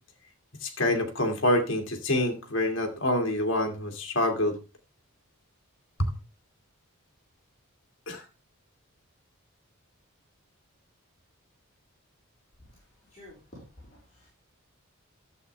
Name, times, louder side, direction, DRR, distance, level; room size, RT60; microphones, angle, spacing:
voice 1, 0.6-4.6 6.0-6.1 8.1-8.2, left 1 dB, 55° left, 4 dB, 2.0 m, -26 dB
voice 2, 13.1-14.3, left 1 dB, 30° left, -7 dB, 4.1 m, -50 dB
11.5 x 7.8 x 3.3 m, 0.29 s
head